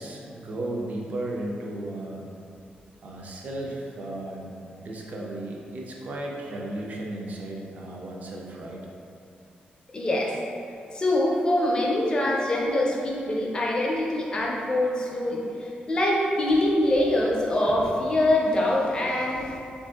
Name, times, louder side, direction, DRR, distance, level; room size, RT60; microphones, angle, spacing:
voice 1, 0.0-2.2 3.0-4.5 4.8-8.8, right 1 dB, 50° right, -2 dB, 0.4 m, -34 dB
voice 2, 9.9-10.3 10.9-19.6, left 1 dB, 25° left, -3 dB, 0.4 m, -24 dB
3.5 x 2.5 x 2.3 m, 2.5 s
wide cardioid pair, 135°, 3 cm